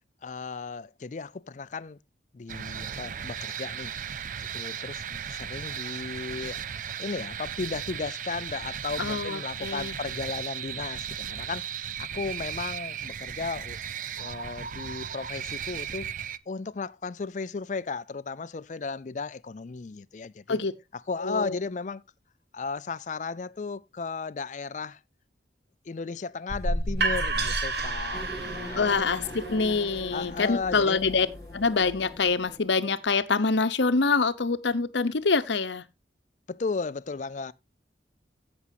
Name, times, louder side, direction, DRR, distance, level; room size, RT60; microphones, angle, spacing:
voice 1, 0.2-2.0 2.3-3.9 4.4-6.6 7.0-11.7 12.0-13.8 14.2-16.1 16.5-20.6 21.1-22.0 22.5-25.0 25.9-29.3 30.1-31.0 36.5-37.5, left 4 dB, 40° left, 0.4 m, -35 dB
sound 1, 2.5-16.4, right 8 dB, 45° right, 0.4 m, -36 dB
voice 2, 9.0-10.0 20.5-20.7 21.2-21.6 28.8-31.3 31.5-35.8, left 4 dB, 75° left, 0.8 m, -25 dB
sound 2, 26.5-32.3, right 2 dB, 60° right, 1.7 m, -32 dB
sound 3, 28.1-33.0, left 1 dB, 20° left, 1.0 m, -42 dB
16.5 x 6.2 x 2.7 m
head